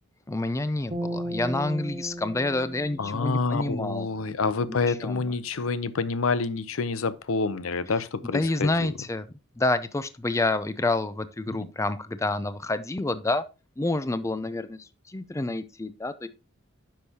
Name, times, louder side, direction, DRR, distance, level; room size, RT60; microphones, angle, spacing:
voice 1, 0.3-4.1 4.7-5.3 8.3-9.3 9.6-13.4 13.8-16.3, left 2 dB, 15° left, 0.5 m, -28 dB
sound 1, 0.9-4.3, equal, 35° right, 1.4 m, -36 dB
voice 2, 3.0-8.9 11.5-11.7, left 4 dB, 90° left, 0.6 m, -28 dB
10.0 x 6.3 x 2.8 m
head